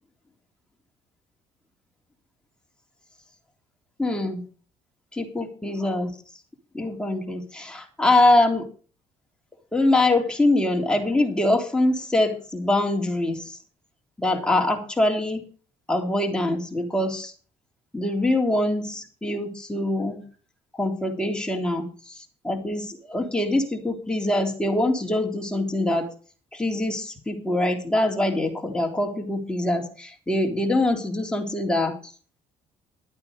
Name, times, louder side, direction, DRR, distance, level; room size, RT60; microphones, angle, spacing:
voice 1, 4.0-4.4 5.1-6.1 6.7-8.6 9.7-13.6 14.2-15.5 15.9-17.3 17.9-20.2 20.7-26.1 26.5-32.1, left 1 dB, 5° left, 1 dB, 3.5 m, -24 dB
12.5 x 9.6 x 5.2 m, 0.40 s
cardioid pair, 85°, 14 cm